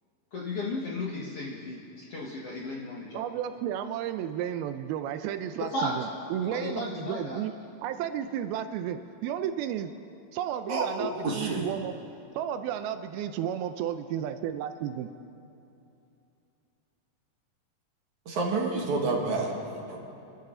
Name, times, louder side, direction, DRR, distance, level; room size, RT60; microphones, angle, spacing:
voice 1, 0.3-3.3 5.7-6.0 6.4-7.4, left 2 dB, 55° left, -4 dB, 1.8 m, -34 dB
voice 2, 3.1-7.5 7.8-9.9 10.3-12.0 12.3-15.1, right 10 dB, 80° right, 9 dB, 2.4 m, -33 dB
voice 3, 10.7-11.7 18.3-20.0, right 3 dB, 55° right, -1 dB, 2.7 m, -29 dB
28.0 x 12.5 x 3.8 m, 2.7 s
omnidirectional pair, 4.5 m